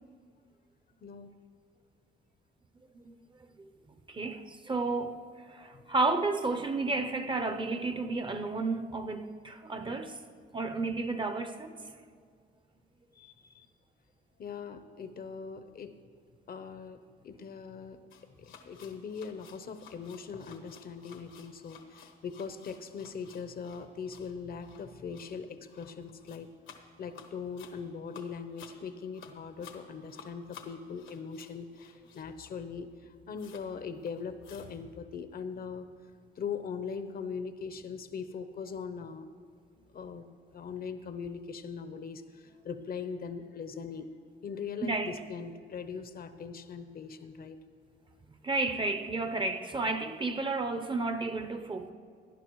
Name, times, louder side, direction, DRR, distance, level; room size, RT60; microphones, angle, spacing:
voice 1, 1.0-1.3 5.7-5.8 13.2-13.7 14.4-15.9 16.5-17.0 17.2-18.0 18.4-26.5 27.0-32.9 33.3-35.9 36.4-39.3 39.9-42.2 42.6-44.1 44.4-47.6, left 6 dB, 50° left, 0.7 m, -40 dB
voice 2, 4.1-10.2 10.5-11.7 44.8-45.2 48.4-51.9, right 3 dB, 25° right, 0.7 m, -32 dB
sound 1, 18.1-32.7 32.9-33.0 33.4-33.7 34.0-34.8, left 6 dB, 80° left, 1.1 m, -54 dB
17.5 x 10.5 x 3.1 m
cardioid pair, 90°, 20 cm